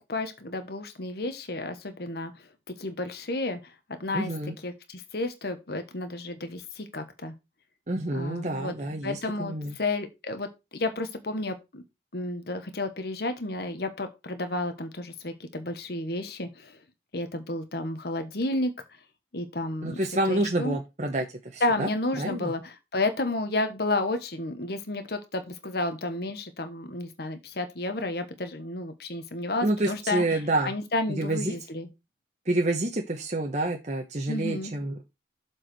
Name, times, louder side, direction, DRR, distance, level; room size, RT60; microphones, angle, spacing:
voice 1, 0.1-2.3 2.8-3.7 4.0-4.3 4.6-7.3 8.1-8.7 9.0-11.8 12.1-16.8 17.1-18.7 19.3-20.0 20.3-20.8 21.6-30.2 30.6-31.9 34.3-34.7, left 2 dB, 60° left, 8 dB, 1.2 m, -31 dB
voice 2, 4.1-4.5 7.9-9.8 19.8-21.3 21.5-21.9 22.2-22.5 29.6-30.7 31.2-31.6 32.5-35.1, right 2 dB, 40° right, 2 dB, 1.2 m, -28 dB
7.5 x 4.8 x 6.2 m, 0.24 s
head